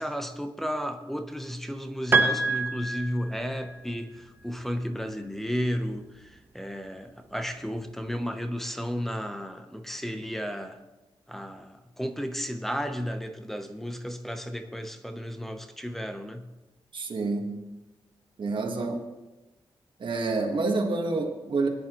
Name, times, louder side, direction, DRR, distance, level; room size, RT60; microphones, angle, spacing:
voice 1, 0.0-10.8 11.3-16.5, equal, 5° left, 0.8 m, -33 dB
Piano, 2.1-3.8, right 3 dB, 25° right, 1.1 m, -26 dB
voice 2, 16.9-17.5 18.4-19.0 20.0-21.7, right 3 dB, 55° right, 1.6 m, -28 dB
21.0 x 10.0 x 3.0 m
wide cardioid pair, 160°, 10 cm